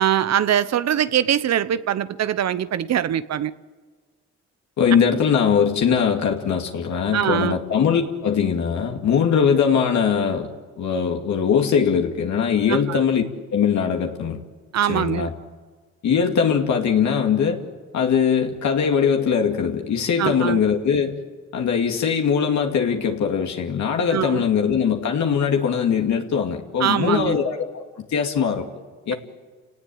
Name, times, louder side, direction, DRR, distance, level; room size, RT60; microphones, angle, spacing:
voice 1, 0.0-3.5 7.1-7.6 12.7-13.0 14.7-15.3 20.2-20.6 24.1-24.4 26.8-27.4, right 10 dB, 60° right, 1.0 m, -22 dB
voice 2, 4.8-10.5 10.8-13.2 13.5-14.4 14.9-15.3 16.0-17.6 17.9-21.2 21.5-28.6 29.1-29.2, left 7 dB, 65° left, 2.4 m, -21 dB
29.0 x 18.5 x 8.7 m
cardioid pair, 90°, 30 cm